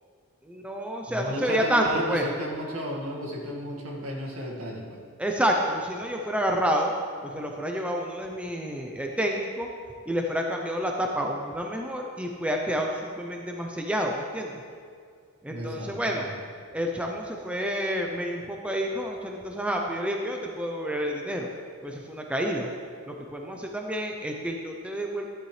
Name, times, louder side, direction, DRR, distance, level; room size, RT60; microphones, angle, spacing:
voice 1, 0.4-2.3 5.2-6.9 7.2-9.7 10.1-14.6 15.4-16.3 16.7-21.5 21.8-22.7 23.1-25.2, equal, 5° right, 1 dB, 0.6 m, -29 dB
voice 2, 1.1-5.0 15.5-16.3, equal, 70° right, -1 dB, 1.9 m, -34 dB
13.5 x 10.5 x 3.3 m, 2.1 s
head